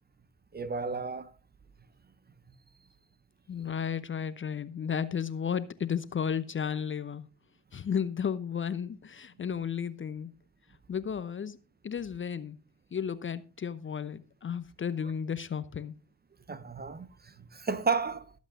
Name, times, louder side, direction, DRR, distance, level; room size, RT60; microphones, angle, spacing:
voice 1, 0.5-1.3 16.5-18.3, right 5 dB, 20° right, 0.9 m, -32 dB
voice 2, 3.5-7.3 7.7-10.3 10.9-11.6 11.8-12.6 12.9-15.9, left 7 dB, 25° left, 0.8 m, -33 dB
22.0 x 8.2 x 2.6 m
hypercardioid pair, 55°, 44 cm